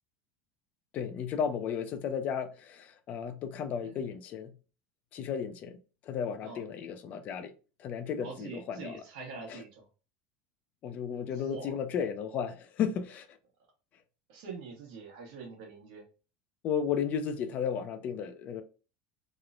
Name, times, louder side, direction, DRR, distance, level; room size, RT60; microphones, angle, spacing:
voice 1, 0.9-4.5 5.1-5.8 6.0-7.5 7.8-9.0 9.5-9.6 10.8-13.3 16.6-18.6, left 7 dB, 35° left, 0.3 m, -34 dB
voice 2, 8.2-9.9 11.3-11.8 14.3-16.0, right 4 dB, 70° right, 1.0 m, -44 dB
3.0 x 2.0 x 2.4 m
supercardioid pair, 155°, 4 cm